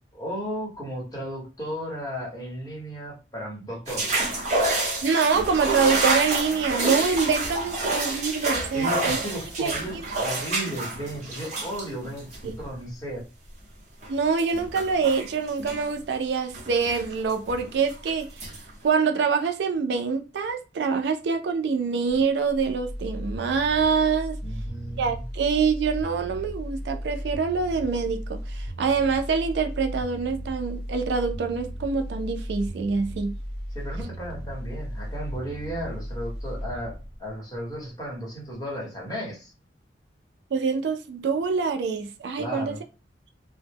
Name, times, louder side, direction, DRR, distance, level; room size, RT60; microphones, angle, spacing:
voice 1, 0.1-4.3 8.7-13.2 24.4-25.2 33.7-39.5 42.4-42.8, equal, 20° left, 0.9 m, -35 dB
sound 1, 3.9-12.6 14.0-14.1 14.4-15.9 16.5-18.1 18.4-18.7, right 2 dB, 40° right, 0.8 m, -28 dB
voice 2, 5.0-9.2 9.6-10.0 12.4-12.5 14.1-18.3 18.8-24.4 25.0-33.3 40.5-42.7, right 5 dB, 70° right, 0.3 m, -25 dB
sound 2, 22.1-38.1 38.5-38.6, equal, 60° left, 0.9 m, -35 dB
2.1 x 2.0 x 3.3 m
head